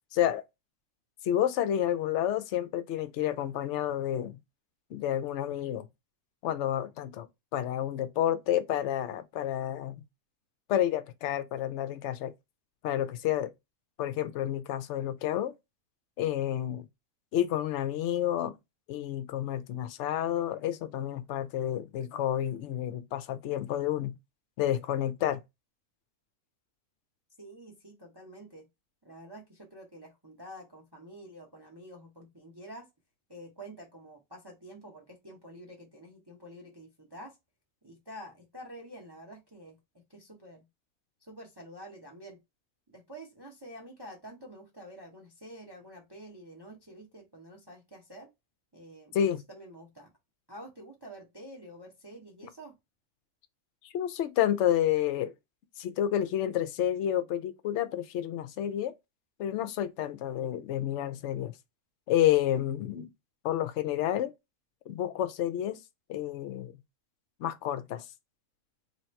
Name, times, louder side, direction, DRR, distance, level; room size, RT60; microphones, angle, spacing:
voice 1, 0.1-0.4 1.2-4.4 4.9-5.9 6.4-7.3 7.5-10.0 10.7-12.3 12.8-13.5 14.0-15.5 16.2-16.8 17.3-18.5 18.9-24.2 24.6-25.4 49.1-49.4 53.8-55.3 55.8-58.9 59.4-61.5 62.1-63.1 63.4-64.3 64.9-65.8 66.1-66.7 67.4-68.0, left 11 dB, 65° left, 0.8 m, -30 dB
voice 2, 27.4-28.7 29.0-32.9 33.3-37.4 37.8-39.8 40.1-40.7 41.2-42.4 42.9-48.3 48.7-49.2 49.5-50.1 50.5-52.8, right 1 dB, 25° right, 0.6 m, -48 dB
3.1 x 2.9 x 4.3 m
omnidirectional pair, 1.6 m